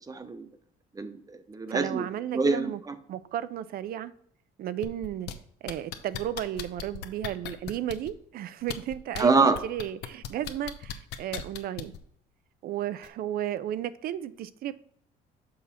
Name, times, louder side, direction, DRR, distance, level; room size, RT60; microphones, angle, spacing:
voice 1, 0.1-0.5 1.0-2.1 2.3-2.9 9.2-9.6, right 4 dB, 20° right, 0.9 m, -25 dB
voice 2, 1.7-2.8 3.1-4.1 4.6-5.3 5.6-9.3 9.6-11.9 12.6-14.7, right 11 dB, 65° right, 0.5 m, -34 dB
sound 1, 4.8-5.3 5.7-8.1 8.6-9.2 9.5-12.0 13.0-13.1, left 9 dB, 80° left, 0.8 m, -37 dB
6.3 x 5.4 x 4.3 m
cardioid pair, 110°, 17 cm